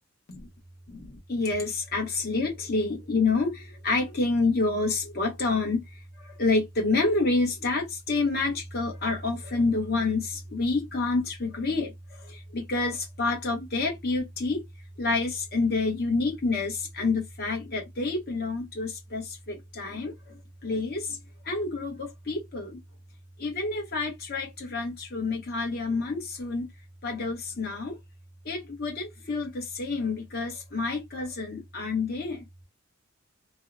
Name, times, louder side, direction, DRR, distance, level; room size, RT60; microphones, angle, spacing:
voice 1, 0.9-5.8 6.2-11.9 12.2-14.6 15.0-20.1 20.6-21.2 21.5-22.8 23.4-26.7 27.0-28.0 28.4-32.4, left 3 dB, 50° left, 1.0 m, -28 dB
2.7 x 2.1 x 2.4 m
head